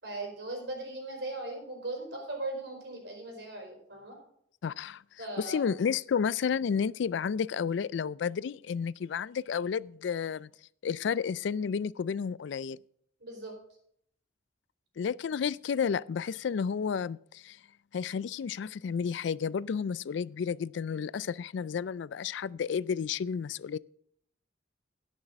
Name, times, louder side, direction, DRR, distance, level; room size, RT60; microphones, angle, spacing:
voice 1, 0.0-4.2 5.2-5.6 13.2-13.5, right 2 dB, 60° right, 4.6 m, -38 dB
voice 2, 4.6-5.0 5.4-10.5 10.8-12.8 15.0-17.6 17.9-23.8, left 6 dB, 70° left, 0.3 m, -31 dB
16.5 x 6.4 x 5.3 m
head